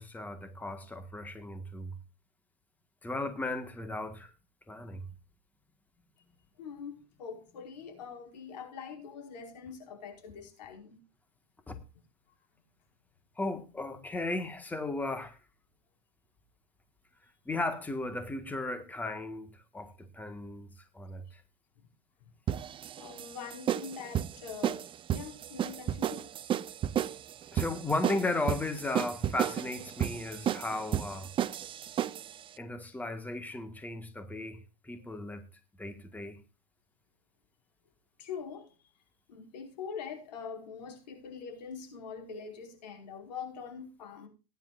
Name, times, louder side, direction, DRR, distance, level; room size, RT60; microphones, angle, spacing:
voice 1, 0.0-1.9 3.0-4.3 4.7-5.1 11.7-11.8 13.4-15.4 17.4-20.7 20.9-21.4 27.5-31.3 32.6-35.5 35.8-36.4, left 2 dB, 10° left, 1.6 m, -36 dB
voice 2, 6.6-11.0 22.2-22.3 23.0-26.3 35.0-35.4 38.2-38.7 39.3-44.3, left 6 dB, 85° left, 5.1 m, -44 dB
sound 1, 22.5-32.4, right 10 dB, 25° right, 0.6 m, -33 dB
19.0 x 10.5 x 2.5 m
supercardioid pair, 130°, 21 cm